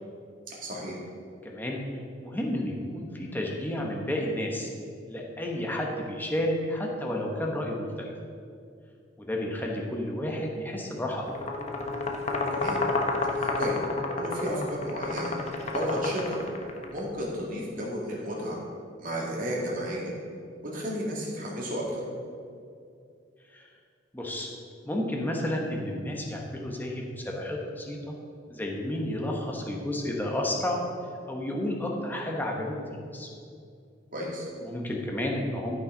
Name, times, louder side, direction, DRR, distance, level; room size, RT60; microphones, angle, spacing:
voice 1, 0.6-1.0 12.5-12.8 13.3-13.8 14.2-15.4 15.7-16.4 16.9-18.6 19.0-20.1 20.7-22.0 34.1-34.5, equal, 50° right, -4 dB, 2.3 m, -32 dB
voice 2, 1.4-1.8 2.2-4.7 5.1-8.1 9.2-11.3 23.5-23.7 24.1-24.5 24.8-28.1 28.5-30.8 31.3-32.8 33.1-33.3 34.6-35.8, left 1 dB, 10° left, -1 dB, 1.1 m, -31 dB
sound 1, 11.3-17.0, left 3 dB, 35° left, 0.8 m, -30 dB
13.0 x 5.8 x 3.9 m, 2.4 s
head